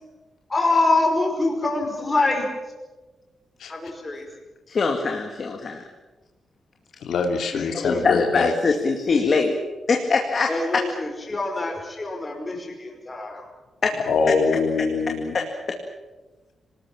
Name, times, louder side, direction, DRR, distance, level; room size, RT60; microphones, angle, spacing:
voice 1, 0.5-2.5 3.7-4.3 7.5-8.1 10.5-13.5, left 2 dB, 20° left, 2 dB, 5.3 m, -25 dB
voice 2, 4.7-5.8 7.7-9.6 9.9-10.8 13.8-13.9 15.3-15.5, left 4 dB, 35° left, 3 dB, 2.2 m, -22 dB
voice 3, 7.0-8.5 14.1-15.3, left 4 dB, 70° left, 4 dB, 2.9 m, -23 dB
26.0 x 19.5 x 8.8 m, 1.2 s
wide cardioid pair, 175°, 0 cm